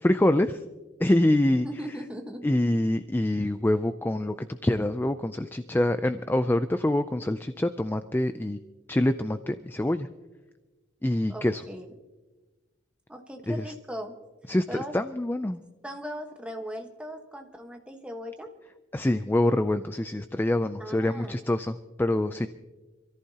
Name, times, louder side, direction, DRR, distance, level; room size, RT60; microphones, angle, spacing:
voice 1, 0.0-0.6 1.0-1.7 2.4-8.6 8.9-10.1 11.0-11.6 13.5-13.7 14.5-15.6 18.9-22.5, left 1 dB, 10° left, 10 dB, 0.3 m, -25 dB
voice 2, 1.6-2.5 11.3-11.9 13.1-14.1 14.7-14.9 15.8-18.5 20.8-21.3, equal, 5° right, 3 dB, 1.3 m, -38 dB
26.5 x 14.0 x 2.9 m, 1.2 s
head